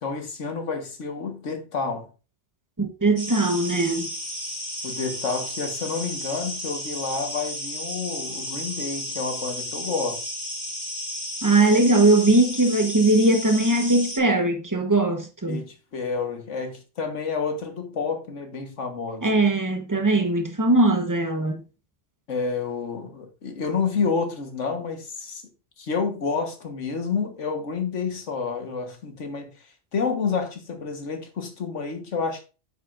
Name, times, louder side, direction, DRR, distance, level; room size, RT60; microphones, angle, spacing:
voice 1, 0.0-2.1 4.8-10.2 15.5-19.3 22.3-25.4 25.8-29.5 29.9-32.4, left 5 dB, 90° left, 1.7 m, -29 dB
voice 2, 2.8-4.1 11.4-15.6 19.2-21.6, right 2 dB, 15° right, 1.0 m, -20 dB
sound 1, 3.2-14.2, left 1 dB, 35° left, 2.6 m, -33 dB
9.1 x 7.6 x 2.5 m
omnidirectional pair, 1.2 m